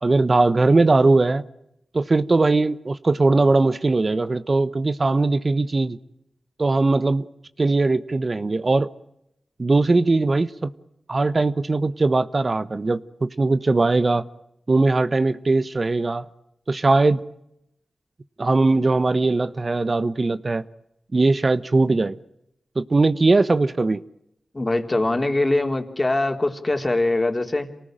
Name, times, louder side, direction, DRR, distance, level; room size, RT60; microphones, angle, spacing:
voice 1, 0.0-1.4 1.9-6.0 6.6-7.2 7.6-8.9 9.6-10.7 11.1-14.2 14.7-16.3 16.7-17.2 18.4-20.6 21.1-22.2 22.7-24.0, right 3 dB, 45° right, 1.1 m, -20 dB
voice 2, 24.5-27.7, left 2 dB, 30° left, 3.6 m, -22 dB
27.5 x 19.0 x 9.0 m
cardioid pair, 45°, 0 cm